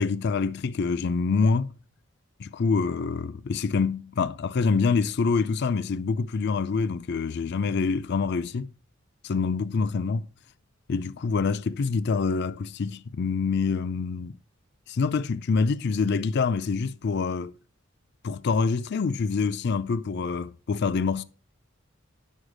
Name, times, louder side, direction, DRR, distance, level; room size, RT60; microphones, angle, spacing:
voice 1, 0.0-1.7 2.4-8.7 9.2-10.3 10.9-14.4 14.9-17.5 18.2-21.2, left 4 dB, 55° left, 0.4 m, -26 dB
10.5 x 6.5 x 5.0 m
head